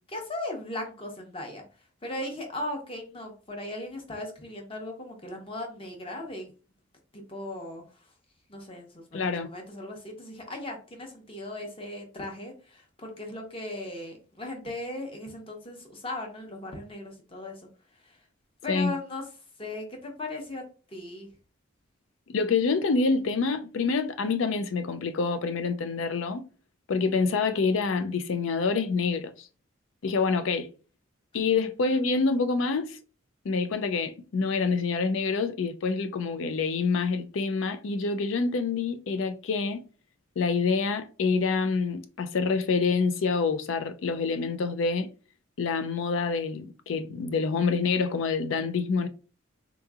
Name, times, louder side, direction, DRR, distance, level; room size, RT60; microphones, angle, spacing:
voice 1, 0.1-1.6 2.0-6.5 7.1-7.9 8.5-17.7 18.0-18.2 18.6-19.2 19.6-21.3 31.9-32.2, left 1 dB, 25° left, 0.8 m, -38 dB
voice 2, 9.1-9.5 18.7-18.9 22.3-26.4 26.9-29.3 30.0-30.7 31.3-33.0 33.4-39.8 40.4-45.1 45.6-49.1, left 4 dB, 70° left, 0.4 m, -27 dB
3.6 x 2.9 x 2.3 m
head